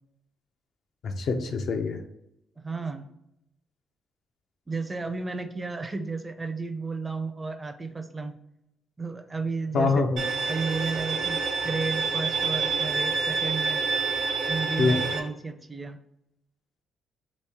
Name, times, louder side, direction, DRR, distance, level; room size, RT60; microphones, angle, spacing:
voice 1, 1.0-2.0 9.7-10.2 14.8-15.0, left 4 dB, 65° left, 5 dB, 0.5 m, -24 dB
voice 2, 2.6-3.1 4.7-8.3 9.0-10.1 10.5-13.8 14.5-16.0, right 4 dB, 20° right, 6 dB, 0.4 m, -33 dB
Bowed string instrument, 10.2-15.2, right 4 dB, 75° right, 0.7 m, -27 dB
3.0 x 2.6 x 3.5 m, 0.81 s
cardioid pair, 90°, 0 cm